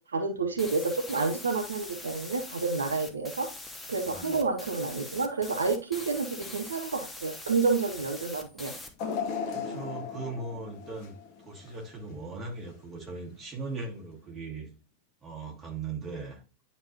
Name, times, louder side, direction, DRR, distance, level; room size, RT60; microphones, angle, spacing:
voice 1, 0.1-3.5 3.9-8.7 9.7-9.8, right 4 dB, 70° right, 5 dB, 0.6 m, -29 dB
sound 1, 0.6-8.9, left 2 dB, 10° left, 0.9 m, -43 dB
voice 2, 4.0-4.5 9.5-14.7 15.2-16.4, right 3 dB, 20° right, -2 dB, 2.2 m, -39 dB
sound 2, 9.0-12.1 12.6-12.7 13.7-13.8, left 6 dB, 40° left, 1.1 m, -36 dB
9.6 x 4.0 x 2.8 m, 0.34 s
figure-of-eight pair, 90°, 0 cm